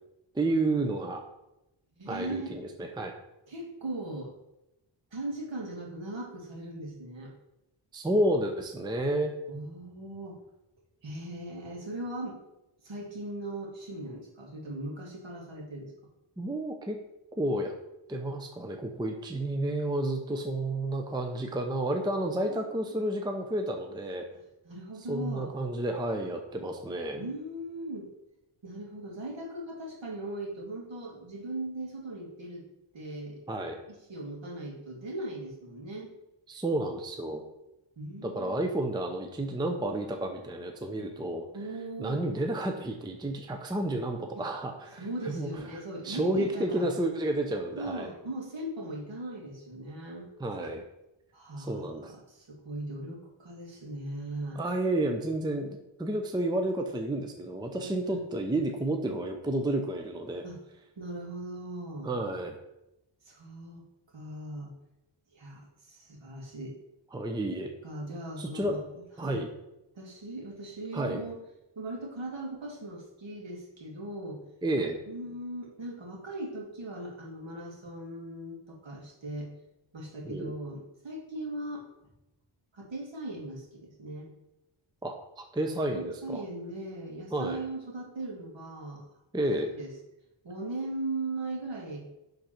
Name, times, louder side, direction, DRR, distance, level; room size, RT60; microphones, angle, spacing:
voice 1, 0.3-1.2 2.1-3.1 7.9-9.3 16.4-17.0 17.4-17.7 18.1-24.3 25.1-27.2 33.5-33.8 36.5-37.4 38.2-41.5 42.0-45.5 46.0-48.1 50.4-50.8 51.6-52.1 54.6-60.4 62.0-62.6 67.1-67.7 68.4-68.8 69.2-69.5 70.9-71.2 74.6-75.0 80.2-80.5 85.0-86.4 87.3-87.6 89.3-89.7, right 1 dB, 10° right, 4 dB, 0.5 m, -31 dB
voice 2, 2.0-2.5 3.5-4.4 5.1-7.3 9.5-10.4 11.0-12.4 12.8-15.9 22.4-22.6 24.6-25.5 27.2-28.1 28.6-32.7 32.9-33.4 33.9-36.2 38.0-38.6 41.5-42.3 44.3-44.5 45.0-46.9 47.8-50.3 51.3-54.6 57.8-58.2 60.4-60.6 61.0-62.1 63.2-63.8 64.1-64.7 65.3-66.7 67.8-68.9 69.2-69.5 69.9-71.4 71.8-74.4 75.1-79.5 79.9-81.9 82.7-84.3 85.9-89.0 89.7-89.9 90.4-92.1, right 1 dB, 65° right, -2 dB, 2.3 m, -39 dB
10.0 x 4.0 x 4.4 m, 0.90 s
wide cardioid pair, 165°, 49 cm